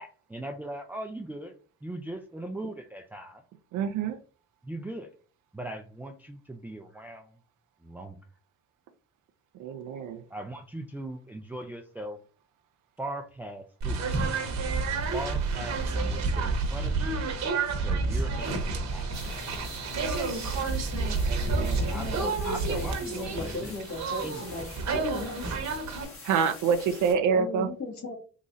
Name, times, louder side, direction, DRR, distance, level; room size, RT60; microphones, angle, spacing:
voice 1, 0.0-1.5 1.8-3.4 4.6-5.1 5.5-7.3 7.8-8.2 10.3-12.2 13.0-14.1 15.1-17.3 17.8-19.1 21.8-23.7 24.2-24.9, right 1 dB, 5° right, 3 dB, 0.4 m, -39 dB
voice 2, 3.7-4.2 9.6-10.2 21.3-21.9 26.2-27.7, right 6 dB, 80° right, 7 dB, 0.5 m, -27 dB
sound 1, 13.8-26.0, right 3 dB, 65° right, 1.1 m, -29 dB
sound 2, 19.1-27.1, left 3 dB, 45° left, 1.6 m, -46 dB
voice 3, 21.4-24.6 24.9-25.6 27.3-28.1, left 2 dB, 65° left, -1 dB, 1.8 m, -37 dB
3.8 x 3.0 x 2.6 m, 0.37 s
cardioid pair, 90°, 30 cm